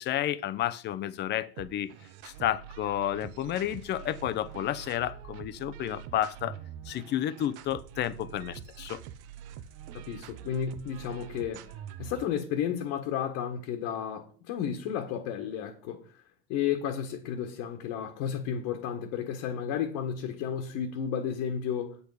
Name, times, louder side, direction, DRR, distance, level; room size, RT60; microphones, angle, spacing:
voice 1, 0.0-1.9 2.2-6.5 6.9-9.0, left 12 dB, 35° left, 0.7 m, -31 dB
sound 1, 1.6-12.4, right 10 dB, 50° right, 0.9 m, -45 dB
voice 2, 10.1-11.6 12.0-16.2 16.5-22.0, left 8 dB, 60° left, 1.6 m, -32 dB
8.4 x 8.3 x 5.0 m
supercardioid pair, 140°, 32 cm